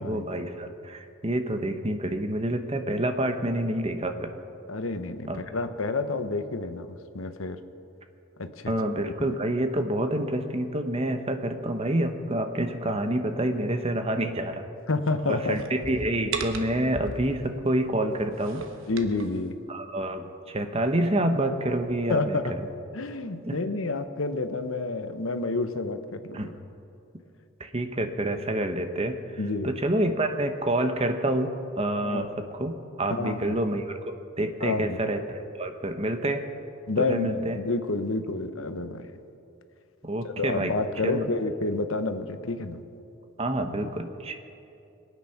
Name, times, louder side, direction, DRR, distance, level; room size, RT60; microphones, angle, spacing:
voice 1, 0.0-4.3 5.3-5.4 8.7-14.6 15.3-18.6 19.7-22.7 23.5-23.6 26.3-26.5 27.6-29.1 29.6-31.5 31.8-36.4 37.0-37.6 40.0-40.7 41.0-41.3 43.4-44.3, right 1 dB, 30° right, 7 dB, 0.9 m, -28 dB
voice 2, 4.7-7.6 8.4-8.7 9.3-9.4 14.9-15.6 18.9-19.5 22.1-22.5 22.9-26.5 29.4-29.7 32.0-32.2 33.1-33.6 34.6-35.0 36.9-39.1 40.2-42.8, left 3 dB, 75° left, 9 dB, 0.9 m, -29 dB
sound 1, 15.0-17.5 18.1-19.3, right 4 dB, 70° right, 1.2 m, -37 dB
22.0 x 9.3 x 5.8 m, 2.7 s
head